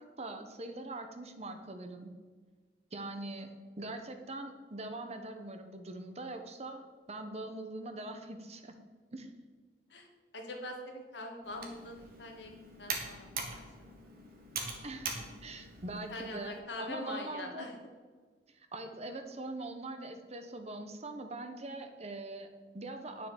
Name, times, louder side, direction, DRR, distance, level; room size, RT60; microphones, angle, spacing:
voice 1, 0.0-2.1 2.9-8.8 9.1-9.3 14.8-15.1 15.4-17.7 18.5-23.3, right 2 dB, 40° right, 6 dB, 1.1 m, -42 dB
voice 2, 10.3-13.6 16.1-17.8, left 1 dB, 90° left, 2 dB, 2.1 m, -43 dB
Computer keyboard, 11.4-16.6, right 4 dB, 55° right, 1.9 m, -42 dB
9.9 x 6.7 x 7.2 m, 1.5 s
head